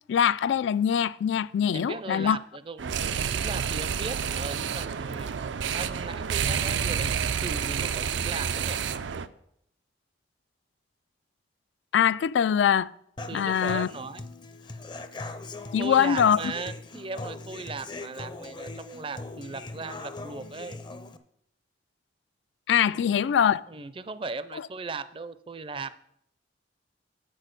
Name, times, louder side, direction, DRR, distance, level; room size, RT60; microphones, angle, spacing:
voice 1, 0.1-2.4 11.9-12.9 13.3-13.9 15.7-16.5 22.7-23.6, left 8 dB, 80° left, 0.3 m, -23 dB
voice 2, 1.7-5.3 5.7-8.8 13.3-14.3 15.7-20.8 22.9-23.1 23.7-25.9, right 4 dB, 30° right, 0.4 m, -38 dB
sound 1, 2.8-9.3, right 7 dB, 85° right, 0.5 m, -29 dB
Human voice / Acoustic guitar, 13.2-21.2, left 2 dB, 25° left, 0.5 m, -40 dB
8.1 x 6.3 x 6.5 m
head